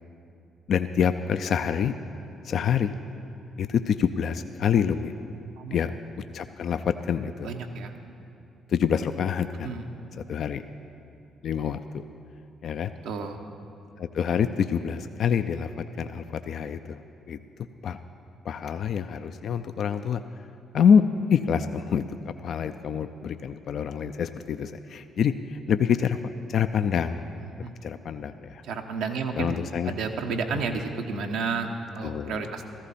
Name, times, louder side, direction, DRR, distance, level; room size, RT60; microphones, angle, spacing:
voice 1, 0.7-2.0 2.4-2.9 3.6-5.1 5.7-5.9 6.3-7.5 8.7-9.7 10.3-10.6 11.4-12.0 12.6-12.9 14.0-17.0 17.3-17.4 17.8-18.0 18.4-20.2 20.7-21.0 21.3-27.3 27.8-28.6 29.4-29.9 30.5-30.6 32.0-32.4, left 7 dB, 65° left, 9 dB, 0.4 m, -26 dB
voice 2, 5.6-5.9 7.4-8.0 9.6-9.9 13.0-13.4 27.4-27.7 28.6-29.6 29.8-32.6, right 4 dB, 75° right, 4 dB, 0.9 m, -31 dB
14.5 x 14.5 x 4.2 m, 2.6 s
hypercardioid pair, 50°, 0 cm